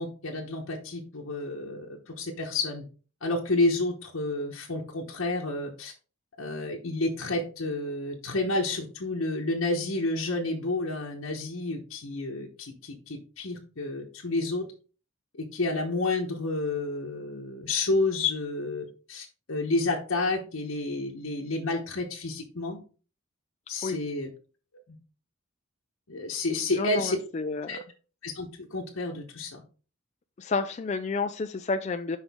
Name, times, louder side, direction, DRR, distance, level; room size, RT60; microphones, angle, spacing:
voice 1, 0.0-2.8 3.2-5.9 6.4-14.6 15.3-22.8 23.7-24.3 24.9-25.0 26.1-27.2 27.7-27.8 28.2-29.6, left 2 dB, 85° left, -1 dB, 1.1 m, -30 dB
voice 2, 26.8-27.8 30.4-32.2, left 4 dB, 35° left, 7 dB, 0.4 m, -30 dB
6.0 x 5.2 x 3.5 m, 0.36 s
head